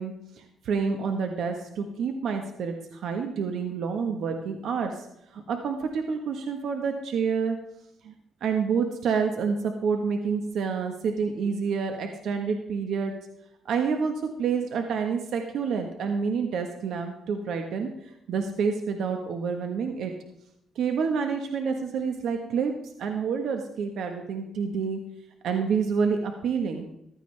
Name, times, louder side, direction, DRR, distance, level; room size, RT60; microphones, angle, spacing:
voice 1, 0.0-5.1 5.3-7.6 8.0-8.1 8.4-13.1 13.6-17.9 18.3-20.1 20.7-22.7 23.0-25.0 25.4-26.9, right 5 dB, 70° right, 4 dB, 1.4 m, -28 dB
15.0 x 12.5 x 3.4 m, 0.80 s
cardioid pair, 90°, 0 cm